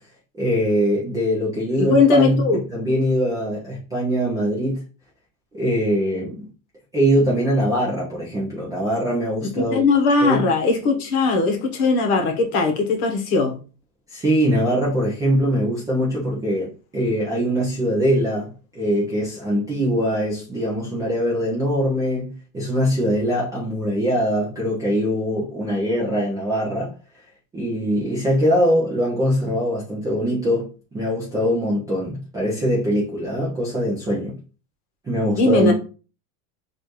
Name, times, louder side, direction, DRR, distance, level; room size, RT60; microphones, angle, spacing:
voice 1, 0.4-2.4 2.7-4.8 5.5-6.4 6.9-9.8 10.2-10.4 14.1-26.9 27.5-34.4 35.0-35.7, equal, 10° right, 0.3 m, -22 dB
voice 2, 1.8-2.6 9.4-13.6 35.3-35.7, left 3 dB, 50° left, 1.1 m, -19 dB
4.3 x 2.6 x 3.0 m
supercardioid pair, 150°, 45 cm